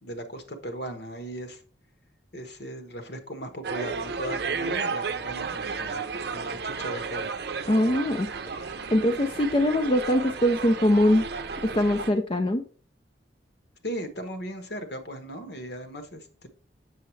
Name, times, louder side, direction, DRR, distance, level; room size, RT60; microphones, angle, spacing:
voice 1, 0.0-1.6 2.3-7.3 13.8-16.5, right 1 dB, 60° left, 7 dB, 1.2 m, -37 dB
sound 1, 3.6-12.1, right 5 dB, 60° right, 0.6 m, -33 dB
voice 2, 7.7-8.3 8.6-11.3 11.6-12.6, left 1 dB, 30° left, 5 dB, 0.5 m, -22 dB
7.6 x 6.6 x 3.2 m, 0.40 s
head